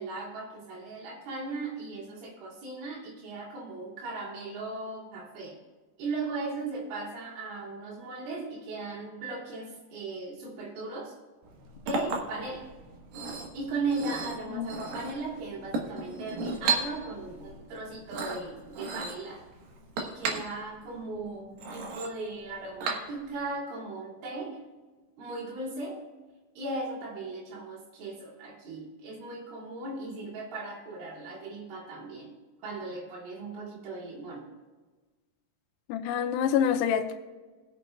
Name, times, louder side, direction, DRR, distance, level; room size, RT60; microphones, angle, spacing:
voice 1, 0.0-5.6 6.0-11.1 11.8-12.7 13.5-19.4 20.0-24.6 25.2-26.0 26.6-32.3 32.6-34.5, right 3 dB, 80° right, -3 dB, 5.3 m, -37 dB
Chink clink, 11.4-23.5, right 4 dB, 65° right, 2.5 m, -36 dB
voice 2, 35.9-37.2, left 8 dB, 90° left, 3 dB, 2.4 m, -27 dB
21.5 x 8.0 x 2.3 m, 1.3 s
omnidirectional pair, 5.5 m